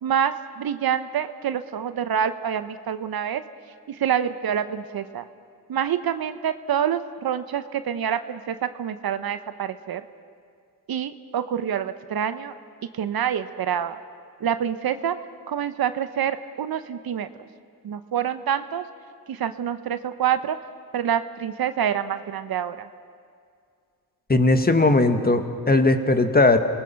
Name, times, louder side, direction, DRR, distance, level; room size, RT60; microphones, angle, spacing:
voice 1, 0.0-3.4 3.9-5.3 5.7-10.0 10.9-12.5 12.9-14.0 14.4-15.2 15.5-17.3 17.8-18.8 19.3-20.6 20.9-22.9, right 9 dB, 65° right, 11 dB, 1.0 m, -26 dB
voice 2, 24.3-26.6, left 2 dB, 25° left, 7 dB, 1.8 m, -18 dB
28.0 x 20.0 x 5.9 m, 2.2 s
cardioid pair, 75°, 39 cm